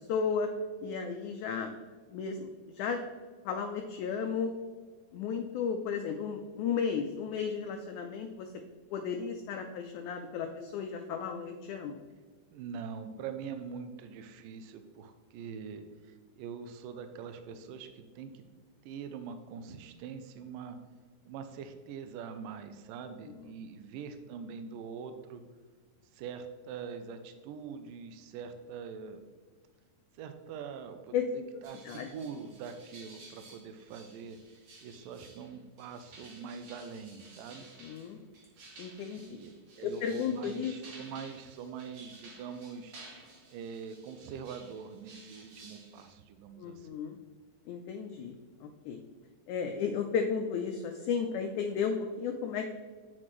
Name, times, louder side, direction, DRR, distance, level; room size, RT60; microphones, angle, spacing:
voice 1, 0.1-0.5 0.8-1.8 2.1-2.5 2.7-3.0 3.4-4.5 5.1-8.5 8.9-12.0 31.1-31.2 31.9-32.1 37.8-38.2 38.8-39.4 39.8-40.7 46.6-47.2 47.7-49.0 49.5-52.8, left 6 dB, 80° left, 4 dB, 1.8 m, -34 dB
voice 2, 12.5-18.4 18.8-20.8 21.3-25.4 26.1-29.2 30.1-34.4 34.8-37.7 39.2-39.5 39.8-43.0 43.5-46.9, right 6 dB, 85° right, 8 dB, 2.2 m, -43 dB
sound 1, 31.6-46.1, right 2 dB, 60° right, 2.5 m, -54 dB
8.6 x 6.2 x 3.1 m, 1.5 s
omnidirectional pair, 3.9 m